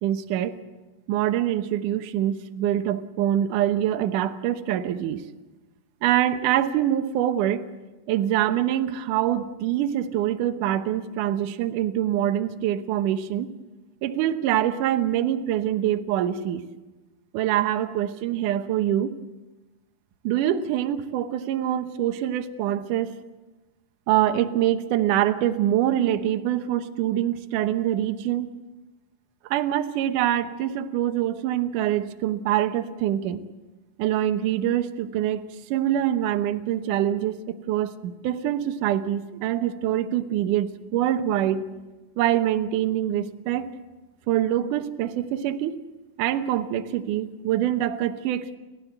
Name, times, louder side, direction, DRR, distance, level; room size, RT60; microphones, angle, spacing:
voice 1, 0.0-0.6 1.1-5.2 6.0-7.6 8.1-13.5 14.0-16.6 17.3-19.1 20.2-23.2 24.1-28.5 29.5-33.4 34.0-35.4 35.7-41.7 42.2-43.7 44.3-45.8 46.2-48.6, right 11 dB, 85° right, 8 dB, 1.8 m, -24 dB
29.5 x 14.0 x 8.1 m, 1.2 s
omnidirectional pair, 5.2 m